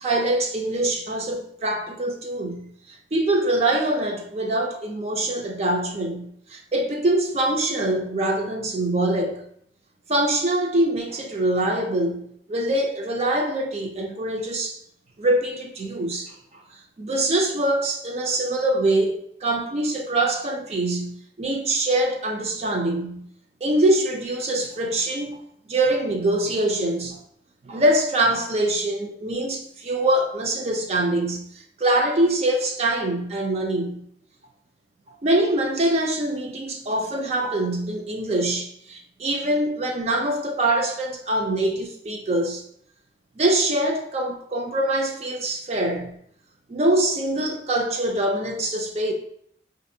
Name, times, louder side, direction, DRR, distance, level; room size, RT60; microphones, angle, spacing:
voice 1, 0.0-9.4 10.1-14.8 15.2-16.6 17.0-23.3 23.6-25.4 25.7-27.2 27.6-31.5 31.8-34.0 35.2-42.6 43.4-46.1 46.7-49.1, right 1 dB, 35° right, 0.4 m, -24 dB
5.0 x 2.5 x 2.6 m
head